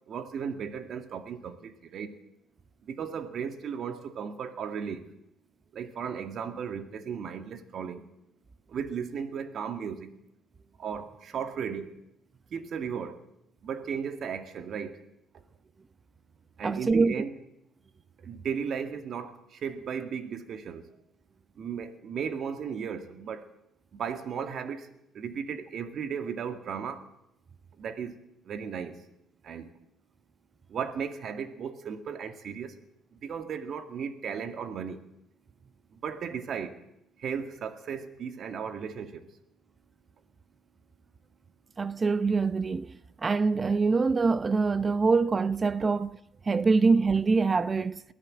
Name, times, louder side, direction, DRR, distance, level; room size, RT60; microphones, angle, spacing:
voice 1, 0.1-2.1 2.8-5.1 5.7-8.1 8.7-10.1 10.8-12.0 12.5-13.2 13.6-15.0 16.6-17.3 18.2-20.9 21.6-23.5 23.9-24.9 25.1-27.1 27.7-28.2 28.4-29.0 29.4-29.7 30.7-32.8 33.1-35.0 35.9-36.8 37.2-39.3, right 7 dB, 55° right, 2.2 m, -35 dB
voice 2, 16.6-17.2 41.8-43.0 43.2-46.2 46.5-48.0, right 4 dB, 30° right, 0.7 m, -24 dB
22.5 x 15.0 x 7.8 m
cardioid pair, 95°, 0 cm